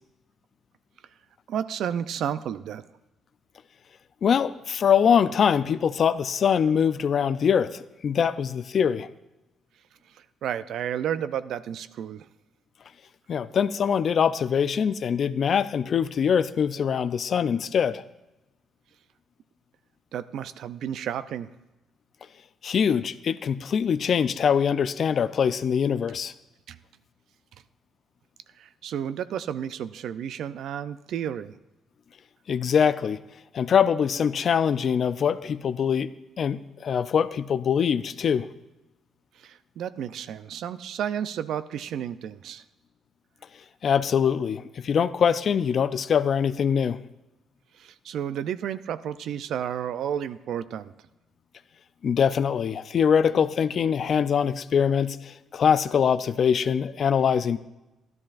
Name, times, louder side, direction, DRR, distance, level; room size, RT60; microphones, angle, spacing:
voice 1, 1.5-2.8 10.4-12.3 20.1-21.5 26.7-26.8 28.6-31.6 39.4-42.6 47.8-50.9, right 9 dB, 75° right, 14 dB, 0.4 m, -32 dB
voice 2, 4.2-9.1 13.3-18.0 22.6-26.3 32.5-33.2 33.5-36.1 36.4-38.5 43.8-47.0 52.0-57.6, left 7 dB, 55° left, 14 dB, 0.4 m, -23 dB
13.0 x 12.0 x 2.4 m, 1.0 s
cardioid pair, 90°, 0 cm